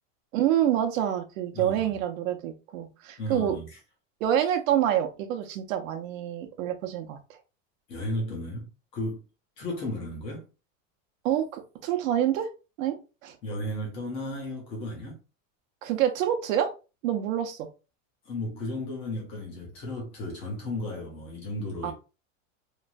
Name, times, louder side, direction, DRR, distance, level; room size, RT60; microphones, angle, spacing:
voice 1, 0.3-3.6 4.2-7.4 11.2-12.5 12.8-13.4 15.8-16.7 17.0-17.7 21.8-21.9, right 10 dB, 85° right, 0.7 m, -27 dB
voice 2, 1.5-1.9 3.2-3.7 7.9-9.2 9.6-10.4 13.4-15.2 18.3-21.9, left 1 dB, 15° left, 0.3 m, -34 dB
3.1 x 2.2 x 2.4 m
supercardioid pair, 170°, 39 cm